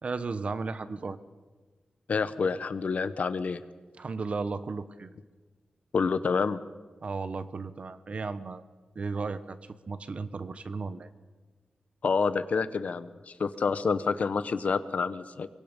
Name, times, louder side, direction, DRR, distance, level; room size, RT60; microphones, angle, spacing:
voice 1, 0.0-1.2 4.0-5.1 7.0-8.6 8.9-9.6 9.9-11.1, right 4 dB, 45° right, 13 dB, 1.0 m, -34 dB
voice 2, 2.1-3.6 5.9-6.6 12.0-13.1 13.4-15.5, left 5 dB, 60° left, 13 dB, 1.0 m, -28 dB
24.5 x 22.5 x 5.3 m, 1.3 s
wide cardioid pair, 155°, 3 cm